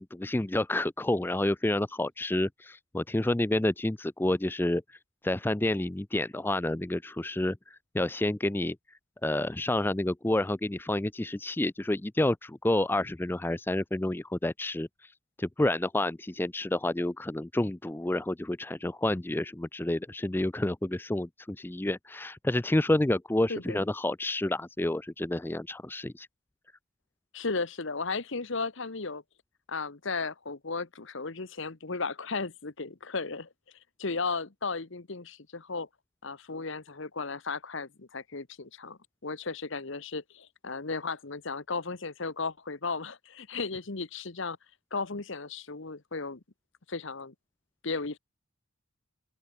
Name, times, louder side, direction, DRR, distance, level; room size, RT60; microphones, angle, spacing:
voice 1, 0.0-4.8 5.2-8.8 9.2-14.9 15.4-26.3, left 1 dB, 10° left, 0.4 m, -29 dB
voice 2, 23.5-23.8 27.3-29.2 29.7-33.5 34.0-35.9 36.2-44.6 44.9-46.4 46.9-47.3 47.8-48.2, left 4 dB, 60° left, 1.1 m, -35 dB
open air
head